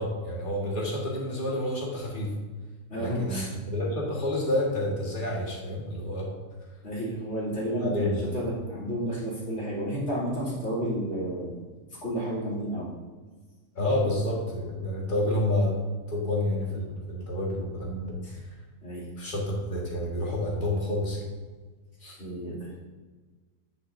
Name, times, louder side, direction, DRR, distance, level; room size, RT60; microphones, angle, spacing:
voice 1, 0.0-2.3 3.0-6.3 7.8-8.2 13.8-15.7 16.1-18.2 19.2-21.2 22.0-22.2, left 1 dB, 35° left, -4 dB, 1.8 m, -29 dB
voice 2, 2.9-3.5 6.8-8.1 8.3-11.6 12.0-12.9 18.2-18.4 18.8-19.1 22.2-22.7, right 1 dB, 55° left, -8 dB, 3.0 m, -31 dB
9.8 x 6.4 x 2.6 m, 1.4 s
omnidirectional pair, 1.6 m